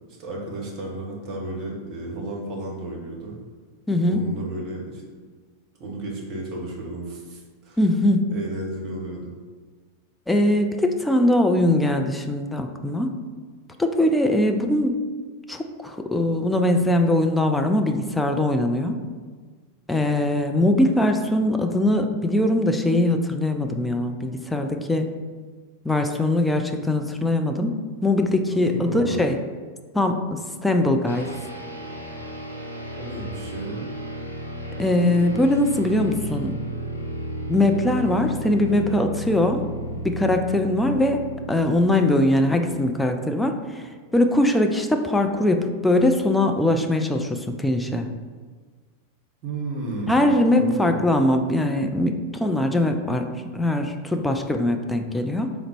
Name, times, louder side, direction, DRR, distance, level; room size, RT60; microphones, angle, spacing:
voice 1, 0.2-3.4 4.1-5.0 5.8-7.8 8.3-9.3 28.7-29.2 33.0-33.9 49.4-51.0, right 2 dB, 40° right, -2 dB, 1.0 m, -33 dB
voice 2, 3.9-4.2 7.8-8.3 10.3-13.2 13.8-15.0 15.5-19.0 19.9-25.1 25.8-29.4 29.9-31.3 34.8-36.6 37.5-39.6 40.0-48.1 50.1-55.6, left 1 dB, 5° left, 4 dB, 0.3 m, -21 dB
sound 1, 31.1-43.3, right 1 dB, 90° left, 0.5 m, -34 dB
3.8 x 2.0 x 4.4 m, 1.5 s
figure-of-eight pair, 90°, 0 cm